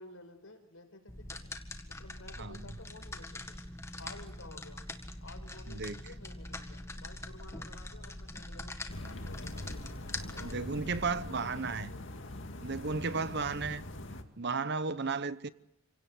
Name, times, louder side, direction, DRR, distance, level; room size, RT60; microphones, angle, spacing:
voice 1, 0.0-1.4 1.8-3.6 4.0-4.9 5.2-9.8 10.3-12.5, left 2 dB, 75° left, 4.7 m, -53 dB
sound 1, 1.1-11.3, left 2 dB, 15° left, 1.8 m, -43 dB
voice 2, 2.4-2.7 5.7-6.0 10.4-11.9 12.6-13.8 14.4-15.5, right 4 dB, 50° right, 0.9 m, -34 dB
sound 2, 8.9-14.2, left 1 dB, 60° left, 2.3 m, -43 dB
28.5 x 17.5 x 7.9 m
head